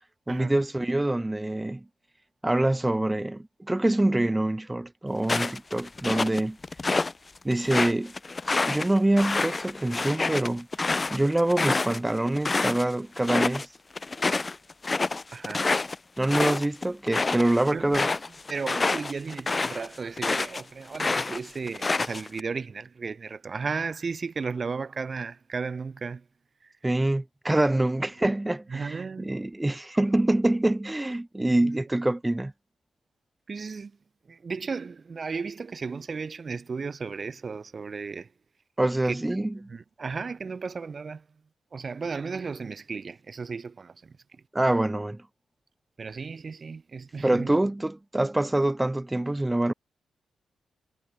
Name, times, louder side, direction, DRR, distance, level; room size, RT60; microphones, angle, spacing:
voice 1, 0.3-1.8 2.4-6.6 7.4-8.1 8.7-10.7 11.1-13.7 16.2-18.1 26.8-32.5 38.8-39.7 44.5-45.2 47.2-49.7, right 1 dB, 15° right, 1.0 m, -25 dB
sound 1, 5.2-7.1 7.5-12.8 13.2-13.7 14.0-20.6 20.9-22.4, left 3 dB, 30° left, 0.6 m, -27 dB
voice 2, 15.3-15.7 17.7-17.9 18.5-26.3 26.6-26.7 28.7-29.3 31.5-31.7 33.5-34.0 34.3-38.3 39.0-39.2 39.5-41.3 41.7-44.4 46.0-47.6, right 5 dB, 45° right, 2.4 m, -35 dB
cardioid pair, 60°, 0 cm